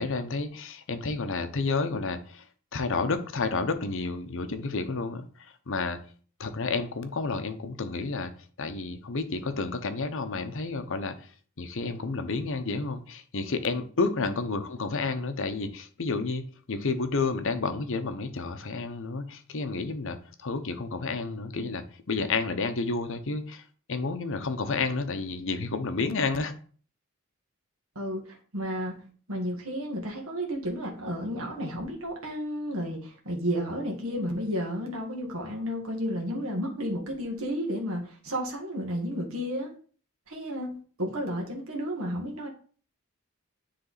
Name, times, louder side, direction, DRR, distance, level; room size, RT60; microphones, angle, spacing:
voice 1, 0.0-2.4 2.7-5.2 5.7-6.0 6.4-8.3 8.6-11.2 11.6-23.6 23.9-26.5, left 3 dB, 65° left, 0.8 m, -30 dB
voice 2, 27.9-29.0 29.3-39.7 40.3-42.5, equal, 75° right, 1.6 m, -32 dB
9.8 x 3.3 x 4.0 m
head